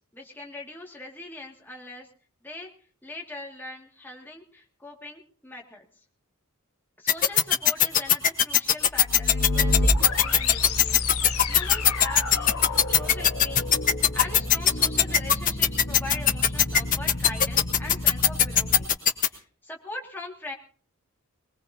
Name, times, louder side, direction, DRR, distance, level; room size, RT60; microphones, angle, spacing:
voice 1, 0.1-2.1 2.4-2.7 3.0-5.8 7.0-11.0 11.5-13.7 14.1-18.9 19.3-20.5, left 2 dB, 10° left, -1 dB, 2.2 m, -41 dB
sound 1, 7.1-19.3, left 10 dB, 40° left, 1.3 m, -18 dB
sound 2, 8.8-18.8, left 2 dB, 80° left, 1.4 m, -30 dB
22.0 x 20.0 x 2.8 m, 0.42 s
head